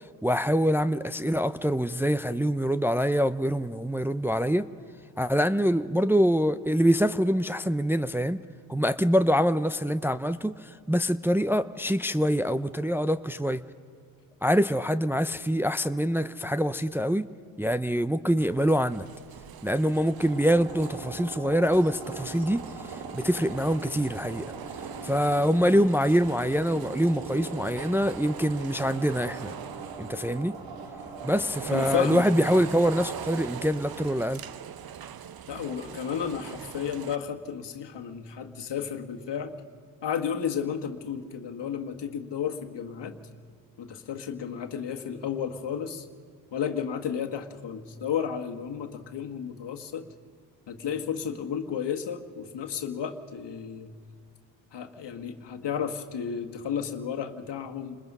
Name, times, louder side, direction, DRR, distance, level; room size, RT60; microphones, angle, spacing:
voice 1, 0.2-4.7 5.2-8.4 8.7-13.6 14.4-17.3 17.6-19.1 19.6-22.6 23.1-24.5 25.0-29.5 30.0-30.5 31.2-34.4, equal, 5° right, 10 dB, 0.6 m, -25 dB
sound 1, 18.4-37.2, right 9 dB, 55° right, 0.8 m, -42 dB
sound 2, 20.2-33.5, right 4 dB, 85° right, 2.3 m, -42 dB
voice 2, 31.7-32.3 35.5-39.5 40.0-43.2 43.8-46.1 46.5-50.1 50.7-53.9 54.7-58.0, left 7 dB, 65° left, 5 dB, 1.7 m, -32 dB
29.5 x 21.0 x 5.5 m, 2.2 s
supercardioid pair, 50°, 45 cm